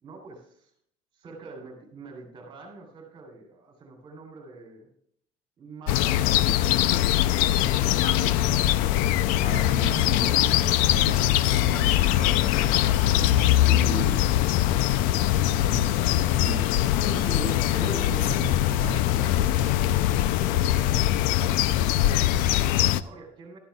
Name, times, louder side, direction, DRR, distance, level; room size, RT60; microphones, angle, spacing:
voice 1, 0.0-0.7 1.1-4.9 5.6-8.0 14.8-15.2 15.8-16.8 18.2-19.5 20.3-23.6, right 3 dB, 35° right, 3 dB, 3.2 m, -46 dB
sound 1, 5.9-23.0, left 13 dB, 75° left, 0.5 m, -22 dB
voice 2, 8.0-8.8 9.4-14.3 15.6-16.0 16.4-18.4 18.7-19.4, equal, 40° left, 0 dB, 4.8 m, -36 dB
14.5 x 12.5 x 2.3 m, 0.66 s
cardioid pair, 155°, 14 cm